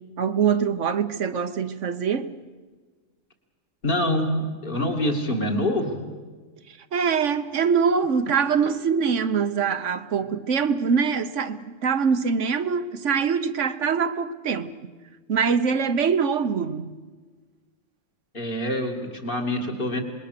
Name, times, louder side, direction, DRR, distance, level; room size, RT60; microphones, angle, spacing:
voice 1, 0.0-2.3 6.9-14.7 15.3-16.9, right 6 dB, 75° right, 1.4 m, -23 dB
voice 2, 3.8-4.4 4.6-6.1 18.3-20.0, left 1 dB, 45° left, 2.7 m, -25 dB
26.5 x 21.5 x 6.8 m
omnidirectional pair, 1.3 m